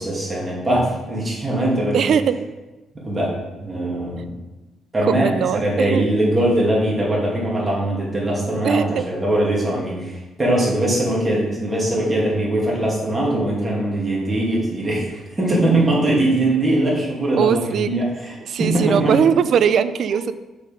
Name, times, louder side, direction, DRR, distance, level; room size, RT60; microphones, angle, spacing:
voice 1, 0.0-2.1 3.0-3.3 3.6-4.3 4.9-18.3 18.6-19.1, right 1 dB, 25° right, -4 dB, 2.5 m, -21 dB
voice 2, 1.9-2.3 4.1-4.2 5.0-6.0 8.6-9.0 17.3-17.9 18.4-20.3, right 7 dB, 65° right, 13 dB, 0.4 m, -20 dB
6.3 x 4.1 x 5.2 m, 1.1 s
cardioid pair, 90°, 0 cm